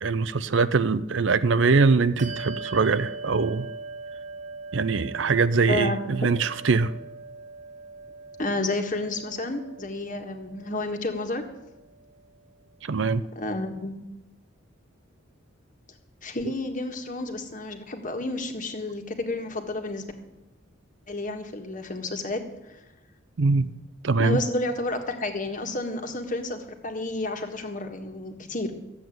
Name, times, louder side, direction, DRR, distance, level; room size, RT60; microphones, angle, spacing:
voice 1, 0.0-3.7 4.7-6.9 12.8-13.2 23.4-23.7 24.0-24.4, right 4 dB, 60° right, 15 dB, 0.6 m, -22 dB
Bell, 2.2-12.2, right 3 dB, 35° right, 0.9 m, -41 dB
voice 2, 5.7-6.0 8.4-11.4 13.3-14.0 16.2-20.1 21.1-22.4 24.2-28.7, left 2 dB, 40° left, 5 dB, 1.6 m, -30 dB
13.5 x 8.0 x 9.2 m, 1.0 s
head